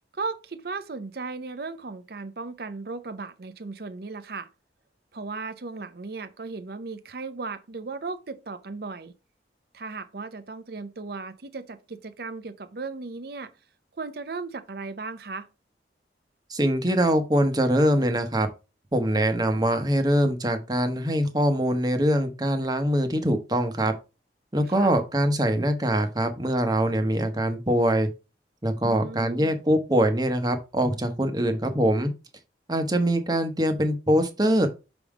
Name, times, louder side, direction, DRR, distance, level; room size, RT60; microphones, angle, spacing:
voice 1, 0.1-4.5 5.1-9.1 9.7-13.5 13.9-15.5 24.7-24.9 28.8-29.6, right 4 dB, 55° right, 0.6 m, -36 dB
voice 2, 16.5-18.5 18.9-23.9 24.5-28.1 28.6-32.1 32.7-34.7, equal, 20° right, 0.9 m, -23 dB
5.9 x 3.6 x 4.8 m
head